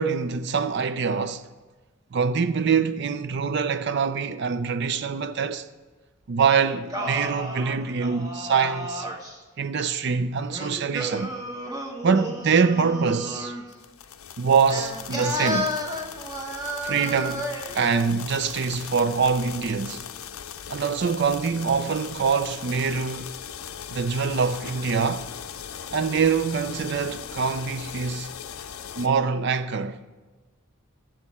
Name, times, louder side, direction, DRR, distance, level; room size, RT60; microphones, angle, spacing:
voice 1, 0.0-1.4 2.1-5.7 6.3-9.1 9.6-11.3 12.0-13.5 14.4-15.7 16.8-17.5 17.7-20.0 20.7-23.3 23.9-25.3 25.9-28.3 29.0-30.0, right 5 dB, 55° right, 0.4 m, -24 dB
Singing, 6.6-9.4 10.5-13.7 14.7-17.8, equal, 15° right, 1.0 m, -32 dB
sound 1, 13.7-29.1, left 8 dB, 80° left, 0.5 m, -39 dB
15.5 x 7.2 x 4.2 m
head